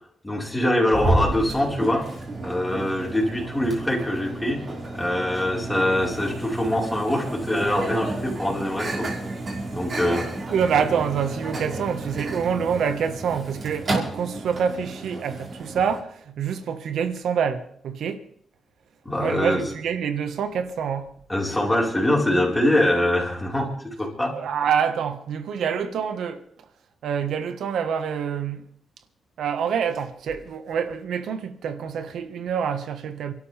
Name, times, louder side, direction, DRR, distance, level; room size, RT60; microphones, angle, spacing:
voice 1, 0.2-2.1 2.4-4.6 4.9-9.1 9.7-10.3 19.0-19.6 21.3-24.4, left 1 dB, 10° left, 4.7 m, -23 dB
Microwave oven, 0.9-16.0, right 2 dB, 45° right, 4.9 m, -31 dB
voice 2, 10.5-18.2 19.2-21.1 24.3-26.5 27.0-28.7 29.4-33.3, right 7 dB, 80° right, 1.5 m, -26 dB
28.5 x 12.5 x 3.5 m
cardioid pair, 95°, 0 cm